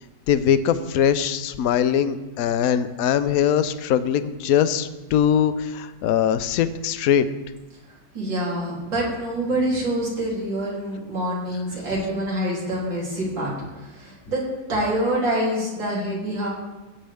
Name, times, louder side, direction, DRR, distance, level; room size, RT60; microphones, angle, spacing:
voice 1, 0.3-7.2, left 9 dB, 65° left, 12 dB, 0.9 m, -21 dB
voice 2, 7.9-14.4 14.7-16.5, right 1 dB, 80° right, -5 dB, 4.0 m, -26 dB
16.5 x 8.9 x 3.5 m, 1.1 s
omnidirectional pair, 2.0 m